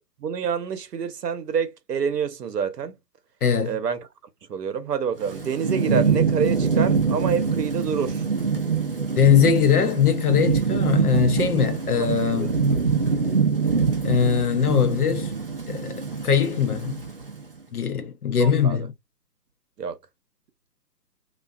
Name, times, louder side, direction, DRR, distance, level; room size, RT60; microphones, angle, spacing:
voice 1, 0.0-3.0 3.6-4.1 4.5-8.2 11.9-12.6 18.4-18.9 19.8-20.0, right 7 dB, 75° right, 0.8 m, -27 dB
voice 2, 3.4-3.8 9.2-12.6 14.0-15.3 15.7-17.0 17.7-18.9, left 7 dB, 65° left, 0.6 m, -21 dB
Thunderstorm / Rain, 5.2-17.4, right 5 dB, 40° right, 0.4 m, -24 dB
2.4 x 2.3 x 2.3 m
figure-of-eight pair, 140°, 49 cm